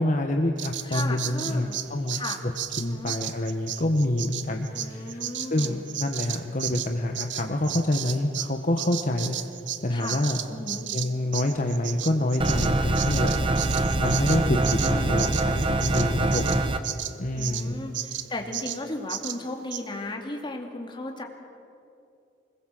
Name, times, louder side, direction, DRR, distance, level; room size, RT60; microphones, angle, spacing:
voice 1, 0.0-2.2 2.8-5.2 5.5-9.3 9.8-10.4 10.9-13.3 14.0-16.6 17.2-17.7, left 1 dB, 45° left, 3 dB, 1.3 m, -27 dB
Bird vocalization bird call bird song, 0.6-8.5 8.8-17.7 17.9-18.3 18.5-18.8 19.1-19.4 19.7-19.8, right 12 dB, 80° right, 1.0 m, -33 dB
voice 2, 0.8-1.8 2.1-2.4 2.8-3.1 4.7-5.8 9.9-10.2 10.5-10.9 14.8-15.2 17.4-21.2, left 2 dB, 25° left, 2 dB, 2.6 m, -35 dB
sound 1, 12.4-16.8, right 2 dB, 30° right, 1.3 m, -24 dB
24.5 x 21.5 x 7.7 m, 2.6 s
head